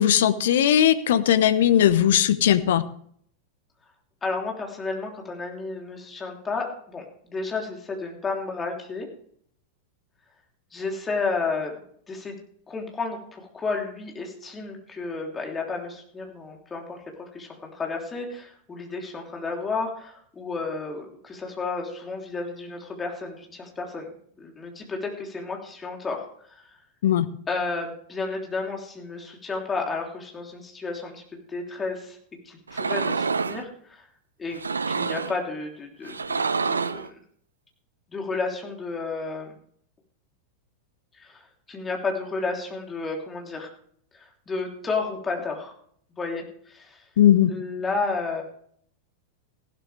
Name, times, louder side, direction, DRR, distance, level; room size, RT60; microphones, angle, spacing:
voice 1, 0.0-2.8 27.0-27.2 47.2-47.5, left 10 dB, 60° left, 13 dB, 0.9 m, -18 dB
voice 2, 4.2-9.1 10.7-11.7 12.1-12.4 12.7-24.1 24.4-26.6 27.5-32.2 32.4-34.1 34.4-34.6 34.9-37.2 38.1-39.6 41.2-41.4 41.7-43.7 44.1-45.7 46.2-47.0 47.5-48.4, left 4 dB, 15° left, 1 dB, 3.2 m, -32 dB
sound 1, 32.7-33.6 34.5-35.4 36.0-37.1, right 4 dB, 75° right, 0.5 m, -27 dB
15.5 x 12.5 x 3.4 m, 0.62 s
figure-of-eight pair, 90°, 0 cm